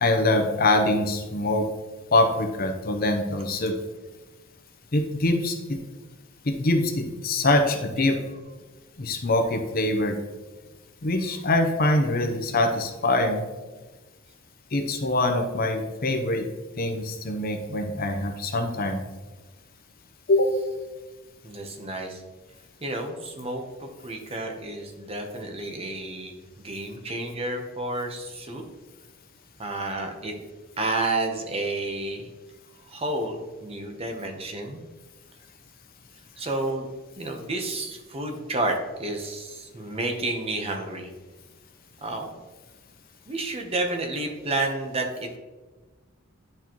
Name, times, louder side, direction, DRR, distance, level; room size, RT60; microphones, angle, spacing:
voice 1, 0.0-1.7 2.1-3.7 4.9-5.8 6.4-8.2 9.0-10.2 11.0-13.4 14.7-16.5 16.8-19.0 20.3-20.5, left 2 dB, 45° left, 5 dB, 0.7 m, -24 dB
voice 2, 21.4-22.2 22.8-28.6 29.6-30.3 30.8-32.3 32.8-34.8 36.4-36.9 37.2-41.1 42.0-42.4 43.3-45.4, right 2 dB, 30° right, 3 dB, 0.8 m, -30 dB
10.5 x 4.3 x 3.0 m, 1.3 s
head